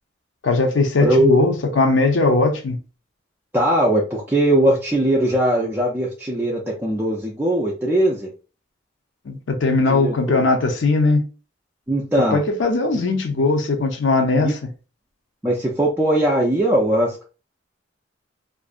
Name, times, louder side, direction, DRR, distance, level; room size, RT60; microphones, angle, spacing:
voice 1, 0.4-2.8 9.3-11.2 12.3-14.6, left 3 dB, 70° left, 0.5 m, -19 dB
voice 2, 1.0-1.4 3.5-8.3 9.9-10.4 11.9-12.4 14.3-14.5 15.4-17.2, right 1 dB, 10° right, 0.3 m, -20 dB
2.5 x 2.2 x 2.4 m
head